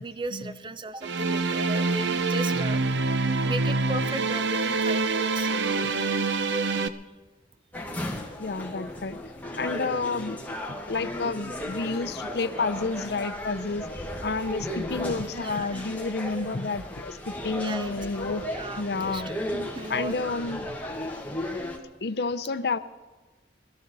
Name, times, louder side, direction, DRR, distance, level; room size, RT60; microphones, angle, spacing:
voice 1, 0.0-2.8 3.4-5.5 15.3-15.8 17.6-17.9 18.3-20.1, right 2 dB, 25° right, 11 dB, 0.6 m, -36 dB
sound 1, 1.0-6.9, right 3 dB, 80° right, 0.7 m, -26 dB
sound 2, 7.7-21.8, left 1 dB, 10° left, 1.3 m, -35 dB
voice 2, 8.4-9.2 9.6-10.4 10.7-13.9 14.2-18.4 18.8-19.3 19.9-20.7 22.0-22.8, left 3 dB, 65° left, 12 dB, 0.6 m, -30 dB
20.5 x 13.0 x 4.1 m, 1.2 s
head